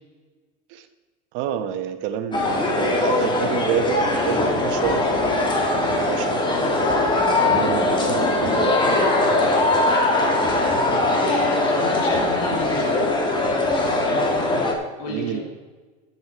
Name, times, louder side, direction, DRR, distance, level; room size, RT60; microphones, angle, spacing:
voice 1, 1.3-6.8 7.4-9.0 15.1-15.4, right 9 dB, 65° right, 9 dB, 1.3 m, -29 dB
sound 1, 2.3-14.7, left 2 dB, 20° left, 2.4 m, -21 dB
voice 2, 10.0-10.4 11.1-13.2 15.0-15.4, left 2 dB, 80° left, -1 dB, 3.5 m, -31 dB
13.5 x 7.5 x 4.8 m, 1.3 s
supercardioid pair, 105°, 21 cm